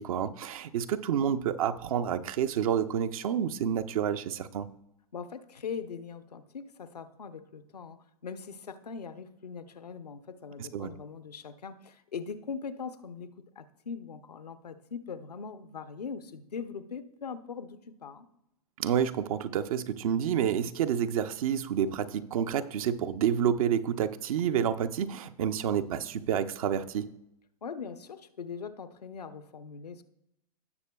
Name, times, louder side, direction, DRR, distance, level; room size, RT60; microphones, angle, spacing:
voice 1, 0.0-4.7 10.6-10.9 18.8-27.1, right 8 dB, 65° right, 11 dB, 0.6 m, -29 dB
voice 2, 5.1-13.3 13.6-18.3 27.6-30.0, left 6 dB, 90° left, 11 dB, 0.7 m, -41 dB
16.5 x 6.6 x 2.3 m, 0.85 s
hypercardioid pair, 115°, 20 cm